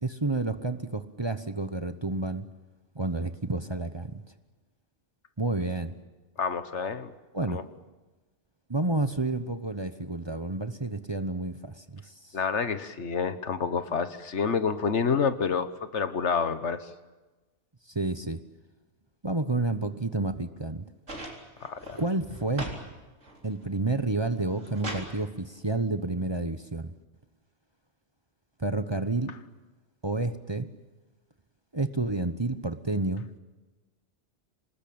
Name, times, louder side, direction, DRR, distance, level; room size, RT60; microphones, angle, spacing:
voice 1, 0.0-2.4 2.9-4.2 5.4-6.0 7.3-7.6 8.7-12.1 17.9-18.4 19.2-20.9 21.9-22.7 23.4-26.9 28.6-29.3 30.0-30.7 31.7-33.2, right 2 dB, 25° right, 10 dB, 1.0 m, -30 dB
voice 2, 6.4-7.1 7.5-7.6 12.3-16.9 21.6-22.0, left 5 dB, 70° left, 12 dB, 1.6 m, -28 dB
sound 1, 21.1-22.9 23.2-23.8 24.3-25.1 26.3-26.4, right 1 dB, 85° right, 4.1 m, -39 dB
26.5 x 20.0 x 8.7 m, 1.2 s
omnidirectional pair, 1.2 m